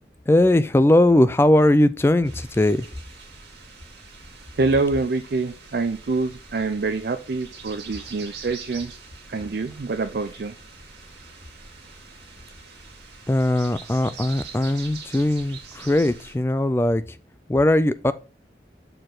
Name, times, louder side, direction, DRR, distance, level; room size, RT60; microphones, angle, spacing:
voice 1, 0.3-2.9 13.3-17.2 17.5-18.1, left 1 dB, 15° left, 0.3 m, -19 dB
sound 1, 2.2-16.3, right 4 dB, 75° right, 2.0 m, -44 dB
voice 2, 4.5-8.9 9.3-10.5, right 3 dB, 60° right, 0.4 m, -25 dB
6.7 x 4.4 x 3.7 m
head